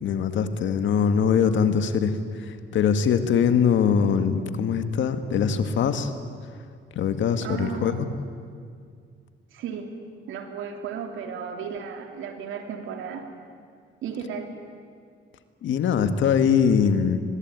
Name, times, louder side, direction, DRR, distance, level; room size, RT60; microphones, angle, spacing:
voice 1, 0.0-6.1 7.0-8.1 15.6-17.2, left 7 dB, 75° left, 9 dB, 1.9 m, -22 dB
voice 2, 7.4-8.0 9.5-9.9 10.3-13.3 14.0-14.5, right 7 dB, 85° right, 5 dB, 3.1 m, -34 dB
23.0 x 22.0 x 9.6 m, 2.2 s
cardioid pair, 90°, 20 cm